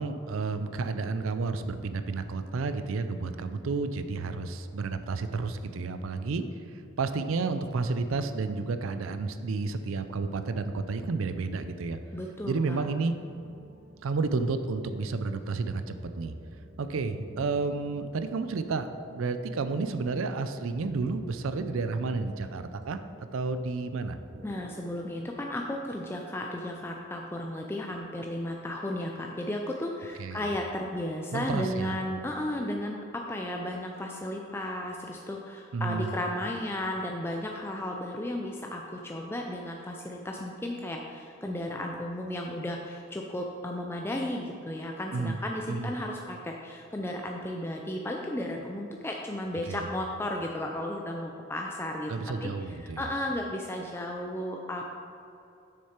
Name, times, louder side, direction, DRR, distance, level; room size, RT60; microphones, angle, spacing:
voice 1, 0.0-6.4 6.7-12.0 12.5-13.1 14.0-16.3 16.8-23.0 23.3-24.2 30.2-30.4 31.3-32.0 35.7-36.1 45.1-45.4 45.7-45.9 49.6-49.8 52.1-53.1, right 4 dB, 85° right, 10 dB, 0.5 m, -31 dB
voice 2, 12.1-12.9 24.4-52.1 52.4-54.9, left 1 dB, 10° left, 1 dB, 0.3 m, -34 dB
sound 1, 13.1-25.5, right 1 dB, 40° right, 0.6 m, -52 dB
6.7 x 6.5 x 4.4 m, 2.7 s
head